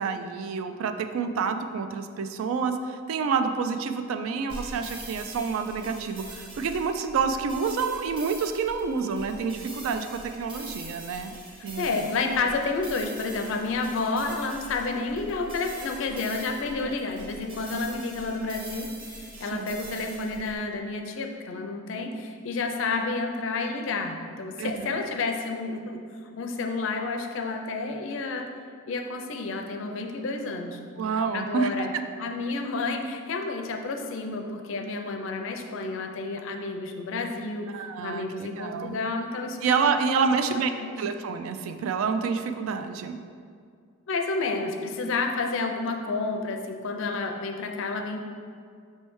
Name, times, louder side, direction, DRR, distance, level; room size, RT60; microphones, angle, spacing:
voice 1, 0.0-11.3 11.6-12.0 16.9-17.0 19.5-19.7 24.6-25.0 31.0-32.0 37.7-39.0 39.6-40.7 41.0-43.2, right 5 dB, 75° right, 8 dB, 0.3 m, -28 dB
sound 1, 4.5-20.6, right 1 dB, 25° right, 0.7 m, -43 dB
voice 2, 11.8-26.0 26.4-28.5 28.9-30.8 31.1-31.9 32.2-39.9 40.4-40.9 44.1-48.2, left 3 dB, 65° left, 4 dB, 0.4 m, -30 dB
5.3 x 3.2 x 3.1 m, 2.2 s
head